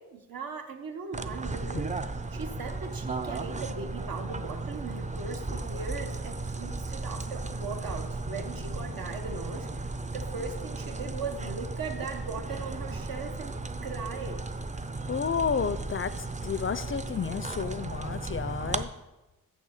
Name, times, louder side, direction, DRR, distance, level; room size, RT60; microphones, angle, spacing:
voice 1, 0.1-2.0 2.3-13.6 13.8-14.4, right 4 dB, 75° right, 4 dB, 1.2 m, -39 dB
sound 1, 1.1-18.8, right 3 dB, 20° right, 0.4 m, -35 dB
voice 2, 15.1-18.9, left 6 dB, 40° left, 13 dB, 0.4 m, -31 dB
6.8 x 6.5 x 7.2 m, 1.0 s
wide cardioid pair, 105°, 35 cm